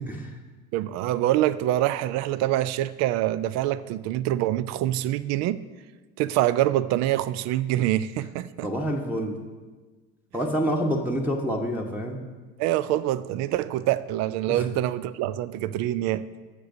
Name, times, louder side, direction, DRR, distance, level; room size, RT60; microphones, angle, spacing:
voice 1, 0.7-5.6 6.2-8.7 12.6-16.2, right 14 dB, 40° right, 0.4 m, -25 dB
voice 2, 8.6-9.4 10.3-12.2 14.5-14.6, equal, 5° right, 1.1 m, -27 dB
18.0 x 6.7 x 2.7 m
figure-of-eight pair, 65°, 43 cm